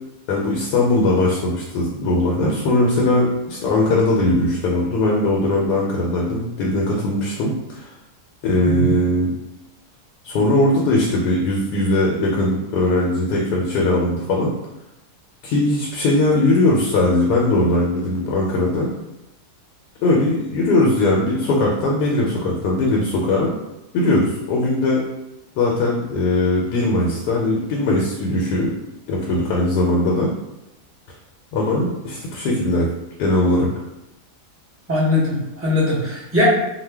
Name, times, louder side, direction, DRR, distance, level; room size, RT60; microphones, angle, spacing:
voice 1, 0.3-7.9 8.4-9.3 10.2-14.5 15.4-18.9 20.0-23.5 23.9-25.1 25.6-28.7 29.1-30.3 31.5-32.9 33.2-33.7, left 2 dB, 90° left, -2 dB, 1.2 m, -19 dB
voice 2, 34.9-36.4, left 1 dB, 15° right, -7 dB, 0.4 m, -20 dB
2.8 x 2.1 x 3.3 m, 0.92 s
omnidirectional pair, 1.7 m